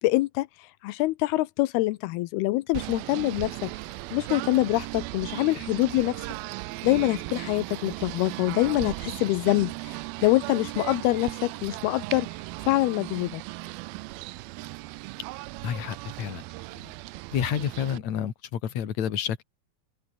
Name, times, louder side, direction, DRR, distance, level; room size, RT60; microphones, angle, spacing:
voice 1, 0.0-3.7 4.1-6.2 6.8-12.3 12.7-13.4, left 19 dB, 85° left, 2.7 m, -25 dB
Singing / Bird, 2.7-18.0, right 22 dB, 80° right, 2.4 m, -37 dB
voice 2, 15.6-16.5 16.7-16.9 17.3-19.4, left 9 dB, 50° left, 3.1 m, -30 dB
open air
omnidirectional pair, 4.5 m